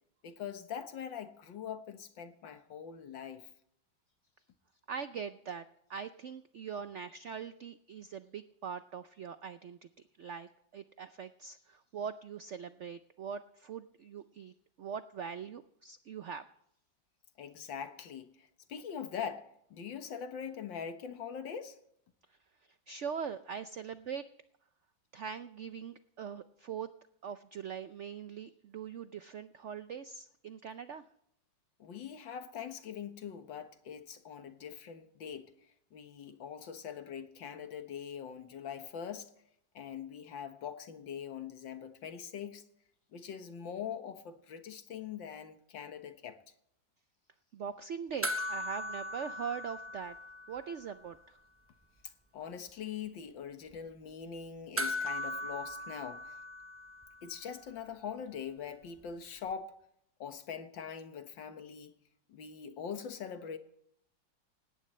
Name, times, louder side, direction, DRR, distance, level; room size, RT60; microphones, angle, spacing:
voice 1, 0.2-3.5 17.4-21.8 31.8-35.5 35.9-39.3 39.8-42.6 43.1-46.4 52.3-56.3 57.2-59.7 60.2-62.0 62.3-63.6, left 7 dB, 80° left, 2.0 m, -43 dB
voice 2, 4.9-9.8 10.2-16.5 22.9-24.2 25.1-26.9 27.2-31.0 47.5-50.2 50.5-51.4, right 7 dB, 75° right, 0.6 m, -42 dB
sound 1, 48.2-50.9 51.1-51.2 54.8-57.4 59.5-59.6, left 1 dB, 15° right, 0.4 m, -38 dB
19.0 x 17.0 x 3.2 m
omnidirectional pair, 2.0 m